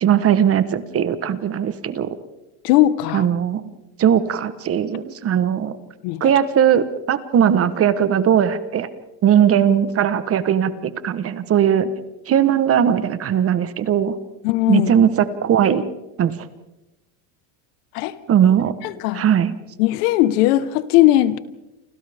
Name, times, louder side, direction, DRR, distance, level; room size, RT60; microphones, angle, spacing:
voice 1, 0.0-2.2 3.1-3.7 4.0-5.8 6.2-8.9 9.2-11.9 12.3-14.2 14.7-15.8 16.2-16.3 18.3-18.7 19.1-19.5, right 9 dB, 30° right, 13 dB, 1.0 m, -18 dB
voice 2, 2.6-3.3 6.0-6.3 14.4-14.9 17.9-18.1 18.8-19.2 19.8-21.4, left 15 dB, 75° left, 14 dB, 1.3 m, -18 dB
29.0 x 26.0 x 3.5 m, 0.98 s
cardioid pair, 150°, 48 cm